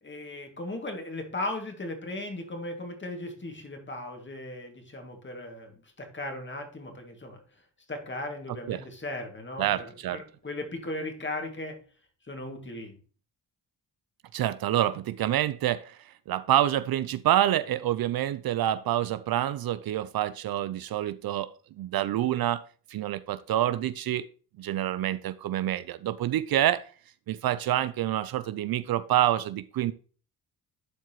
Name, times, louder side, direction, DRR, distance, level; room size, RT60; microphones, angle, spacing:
voice 1, 0.0-7.4 7.9-11.8 12.3-13.0, left 2 dB, 25° left, 4 dB, 2.1 m, -37 dB
voice 2, 9.6-10.2 14.3-16.0 16.3-21.5 21.8-22.6 22.9-24.3 24.6-26.9 27.3-29.9, right 12 dB, 60° right, 15 dB, 0.5 m, -27 dB
11.5 x 4.7 x 3.0 m, 0.40 s
cardioid pair, 80°, 42 cm